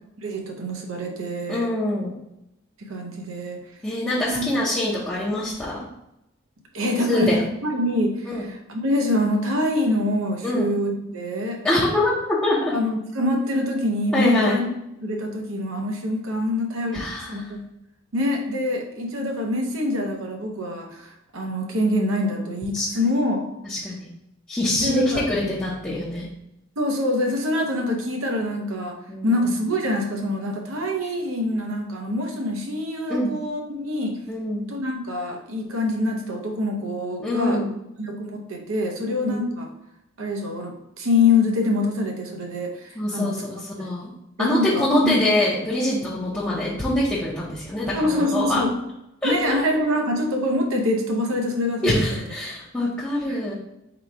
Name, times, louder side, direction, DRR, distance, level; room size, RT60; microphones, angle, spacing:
voice 1, 0.2-1.7 2.8-3.6 4.3-4.6 6.7-11.6 12.7-14.7 15.0-17.6 18.1-23.5 24.8-25.2 26.8-29.0 29.2-34.2 34.7-37.6 38.0-39.7 40.2-43.4 43.8-43.9 44.4-45.1 47.9-48.7 49.2-52.2 53.3-53.4, left 1 dB, 75° right, 1 dB, 0.7 m, -25 dB
voice 2, 1.5-2.2 3.8-5.9 7.1-7.4 8.3-8.4 10.4-10.7 11.6-12.7 14.1-14.6 16.9-17.3 22.7-22.9 23.6-24.1 24.5-26.3 29.1-29.4 33.1-33.3 34.3-34.7 37.2-37.7 39.1-39.5 43.0-44.1 44.4-48.6 49.2-49.6 51.8-53.5, left 1 dB, 5° left, -9 dB, 0.7 m, -24 dB
3.9 x 2.3 x 4.5 m, 0.87 s
head